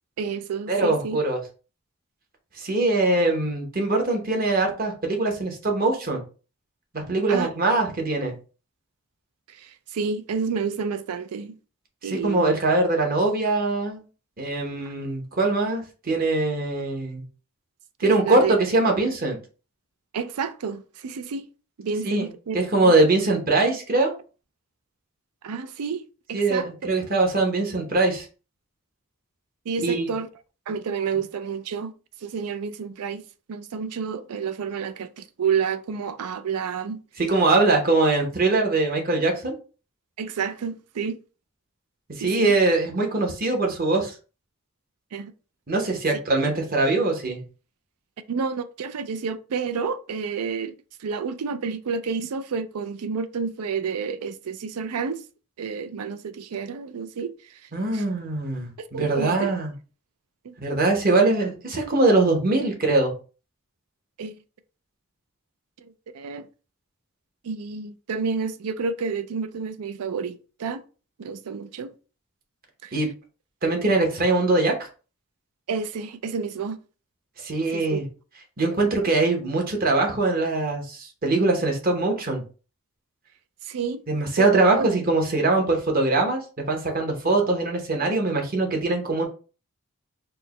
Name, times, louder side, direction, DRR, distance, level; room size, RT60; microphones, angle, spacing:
voice 1, 0.2-1.2 7.3-7.5 9.5-11.6 12.0-12.6 18.0-18.5 20.1-21.5 21.8-22.6 22.8-22.9 25.4-26.0 26.3-26.9 29.7-30.3 30.7-31.9 32.2-37.0 40.2-41.2 42.2-42.5 45.1-45.3 48.3-50.7 51.0-55.2 55.6-58.0 58.8-59.5 60.4-60.5 64.2-64.4 65.8-66.5 67.4-70.8 71.2-71.9 72.8-73.0 75.7-76.8 77.7-78.0 83.6-84.0 84.4-84.5 84.7-84.9, right 5 dB, 85° right, 0.4 m, -30 dB
voice 2, 0.7-1.4 2.6-6.2 6.9-8.3 12.0-14.0 14.4-17.2 18.0-19.4 22.0-22.3 22.5-24.1 26.3-28.3 29.8-30.1 37.2-39.5 42.2-44.1 45.7-47.4 57.7-59.7 60.6-63.1 72.9-73.1 73.6-74.9 77.4-78.0 78.6-82.4 84.1-86.4 86.7-89.2, right 2 dB, 40° right, 0.9 m, -22 dB
4.4 x 2.1 x 2.9 m
head